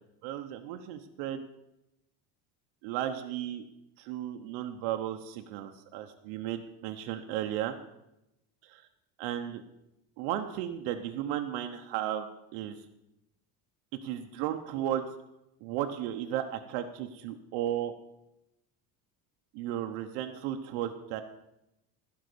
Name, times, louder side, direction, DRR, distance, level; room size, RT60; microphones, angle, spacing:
voice 1, 0.2-1.4 2.8-3.6 4.0-7.7 8.6-8.9 9.2-9.6 10.2-12.8 13.9-15.0 15.6-17.9 19.5-21.2, right 11 dB, 85° right, 5 dB, 1.0 m, -34 dB
15.5 x 5.9 x 6.8 m, 0.88 s
cardioid pair, 160°, 39 cm